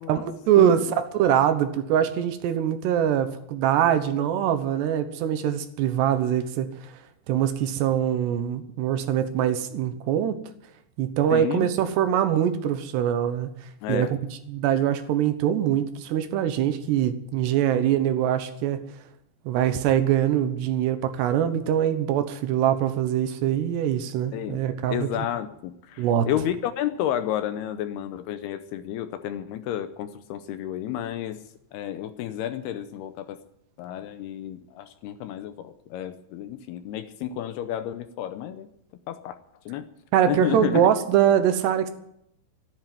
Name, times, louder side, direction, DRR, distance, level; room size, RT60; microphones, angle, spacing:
voice 1, 0.0-6.7 7.3-10.4 11.0-13.5 13.9-14.1 14.5-18.8 19.5-25.1 26.0-26.3 40.1-41.9, right 10 dB, 75° right, 10 dB, 3.1 m, -23 dB
voice 2, 11.3-11.7 13.8-14.1 24.3-24.6 24.9-31.4 31.7-33.4 33.8-38.7 39.1-39.4 39.7-39.9 40.3-40.9, left 11 dB, 80° left, 10 dB, 2.6 m, -31 dB
14.0 x 10.0 x 9.0 m, 0.75 s
omnidirectional pair, 5.0 m